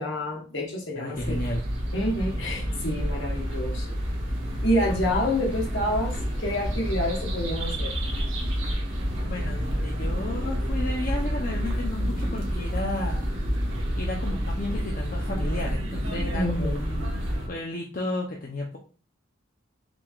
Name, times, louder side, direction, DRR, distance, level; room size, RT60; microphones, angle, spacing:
voice 1, 0.0-1.4 1.9-3.9 4.6-8.0 16.3-16.8, equal, 60° left, 0 dB, 1.4 m, -28 dB
voice 2, 0.9-1.6 9.2-13.2 13.9-18.8, left 1 dB, 45° left, -1 dB, 0.6 m, -33 dB
sound 1, 1.1-17.5, equal, 65° right, 1.4 m, -29 dB
6.0 x 3.4 x 2.4 m, 0.38 s
head